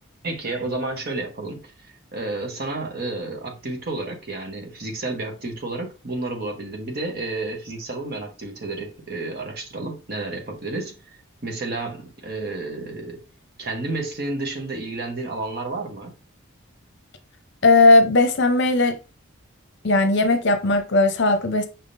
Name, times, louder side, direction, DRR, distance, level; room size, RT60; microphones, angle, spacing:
voice 1, 0.2-11.2 11.4-13.2 13.6-16.1, right 2 dB, 45° right, 1.0 m, -31 dB
voice 2, 17.6-19.0 19.8-21.7, left 2 dB, 55° left, 0.7 m, -17 dB
5.6 x 3.5 x 2.6 m
head